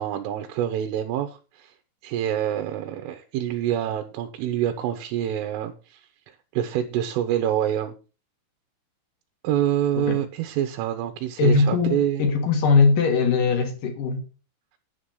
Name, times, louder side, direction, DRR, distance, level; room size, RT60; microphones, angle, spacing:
voice 1, 0.0-1.7 2.0-6.0 6.3-7.9 9.4-12.2, right 10 dB, 80° right, 3.6 m, -26 dB
voice 2, 11.4-14.3, left 4 dB, 55° left, 2.6 m, -20 dB
11.0 x 7.3 x 6.3 m
omnidirectional pair, 5.8 m